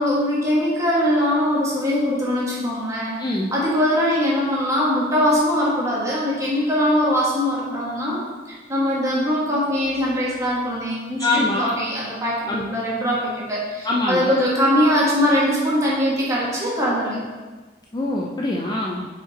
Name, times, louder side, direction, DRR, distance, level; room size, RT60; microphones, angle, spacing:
voice 1, 0.0-3.1 3.5-8.2 8.5-17.2, equal, 15° right, -6 dB, 1.6 m, -21 dB
voice 2, 3.2-3.5 11.2-11.8 12.5-12.8 13.8-14.4 17.9-19.1, left 2 dB, 20° left, -3 dB, 0.4 m, -24 dB
5.2 x 5.1 x 4.1 m, 1.3 s
head